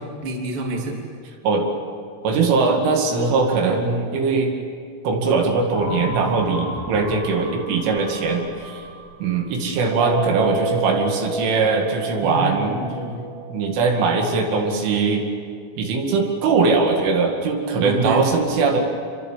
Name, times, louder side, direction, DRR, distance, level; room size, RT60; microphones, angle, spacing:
voice 1, 0.2-0.9 12.2-13.2 17.7-18.2, right 1 dB, 30° right, 0 dB, 3.2 m, -27 dB
voice 2, 2.2-4.5 5.0-8.8 9.2-12.8 13.5-15.3 15.8-18.8, right 4 dB, 75° right, 2 dB, 4.7 m, -21 dB
sound 1, 5.7-9.4 9.7-14.1, right 3 dB, 60° right, 6.0 m, -30 dB
27.5 x 23.5 x 7.4 m, 2.3 s
omnidirectional pair, 5.8 m